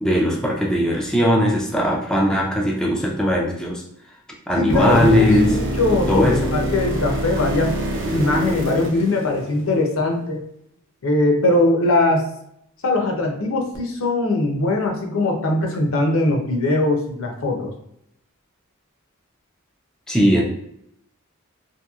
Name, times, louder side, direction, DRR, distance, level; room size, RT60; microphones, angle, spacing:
voice 1, 0.0-3.8 4.5-5.6 6.1-6.5 20.1-20.4, equal, 5° left, -2 dB, 0.3 m, -19 dB
voice 2, 4.6-7.8 8.1-10.4 11.0-12.3 12.8-17.7, left 2 dB, 65° left, 2 dB, 0.6 m, -21 dB
sound 1, 4.7-9.8 13.7-13.8, right 1 dB, 60° right, 0.5 m, -25 dB
2.9 x 2.6 x 2.3 m, 0.75 s
head